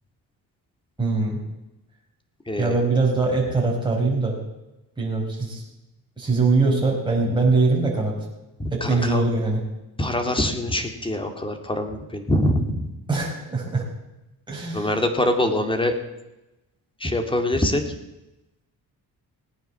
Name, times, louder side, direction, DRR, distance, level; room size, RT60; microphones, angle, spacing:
voice 1, 1.0-1.4 2.6-4.3 5.0-5.6 6.2-8.1 8.7-9.6 13.1-13.8 14.5-14.9, right 3 dB, 10° right, -4 dB, 5.0 m, -22 dB
voice 2, 2.5-2.8 8.6-9.2 10.0-12.9 14.7-16.0 17.0-17.9, left 1 dB, 15° left, 6 dB, 2.4 m, -24 dB
18.0 x 9.3 x 7.2 m, 0.97 s
cardioid pair, 110°, 37 cm